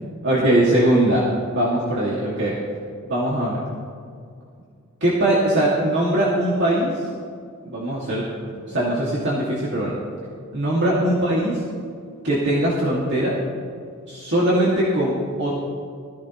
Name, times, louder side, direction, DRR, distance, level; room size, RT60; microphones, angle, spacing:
voice 1, 0.2-2.5 3.0-3.6 5.0-7.1 7.6-10.0 10.5-11.6 12.2-13.4 14.1-15.5, right 1 dB, 55° right, -6 dB, 2.5 m, -21 dB
21.0 x 15.0 x 3.2 m, 2.3 s
head